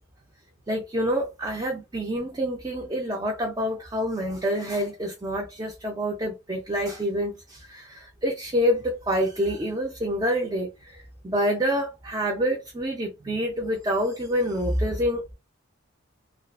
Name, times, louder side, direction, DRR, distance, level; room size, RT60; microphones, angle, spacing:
voice 1, 0.7-15.3, equal, 20° right, 0.4 m, -27 dB
2.4 x 2.3 x 2.3 m
head